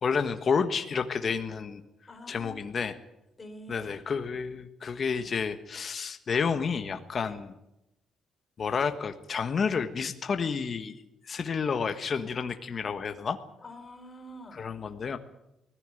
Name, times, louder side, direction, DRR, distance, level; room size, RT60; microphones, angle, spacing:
voice 1, 0.0-1.8 2.3-2.9 3.7-7.5 8.6-13.4 14.5-15.2, left 5 dB, 45° left, 8 dB, 1.5 m, -30 dB
voice 2, 2.1-2.8 3.4-3.9 5.1-5.3 7.2-7.4 13.6-14.7, equal, 30° left, 6 dB, 4.1 m, -46 dB
20.0 x 14.5 x 9.2 m, 0.89 s
cardioid pair, 90°, 0 cm